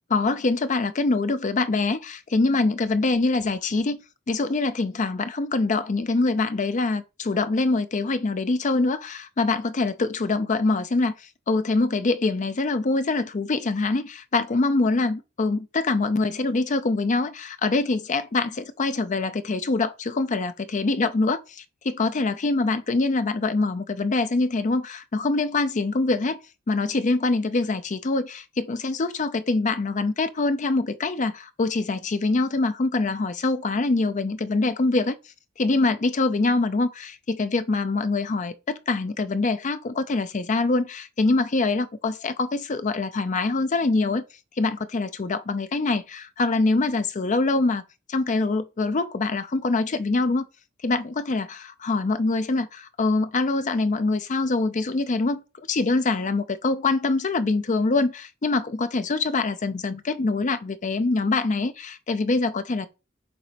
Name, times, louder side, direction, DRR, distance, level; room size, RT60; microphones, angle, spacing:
voice 1, 0.1-4.0 4.3-26.4 26.7-35.2 35.6-44.2 44.6-47.8 48.1-50.5 50.8-62.9, left 3 dB, 40° left, 0.5 m, -24 dB
6.9 x 4.0 x 5.1 m
head